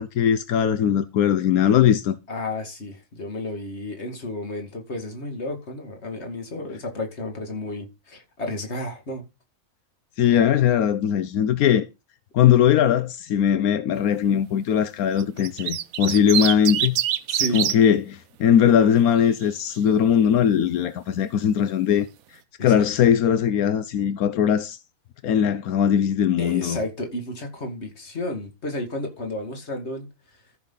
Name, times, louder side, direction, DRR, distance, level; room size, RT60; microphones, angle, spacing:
voice 1, 0.0-2.1 10.2-11.8 12.3-17.0 17.5-22.1 22.6-24.8 25.2-26.8, left 9 dB, 85° left, 1.2 m, -20 dB
voice 2, 2.3-9.2 17.3-17.6 22.6-22.9 26.4-30.1, left 1 dB, 50° left, 2.5 m, -32 dB
sound 1, 15.2-17.8 19.0-19.5, right 11 dB, 75° right, 1.1 m, -25 dB
13.5 x 6.5 x 3.9 m
omnidirectional pair, 1.5 m